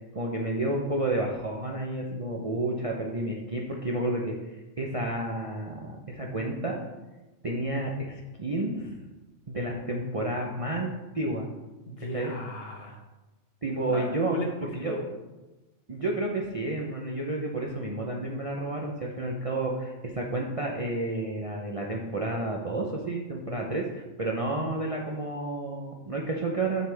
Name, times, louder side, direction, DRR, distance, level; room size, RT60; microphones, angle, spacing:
voice 1, 0.1-4.4 4.8-6.8 7.4-8.9 9.5-10.9 11.1-11.5 12.1-12.3 13.6-14.4 14.7-14.9 15.9-26.9, right 2 dB, 35° right, -1 dB, 0.6 m, -30 dB
voice 2, 11.8-13.0 13.9-15.0, left 1 dB, 50° left, 1 dB, 1.3 m, -36 dB
6.8 x 6.5 x 3.4 m, 1.1 s
omnidirectional pair, 1.4 m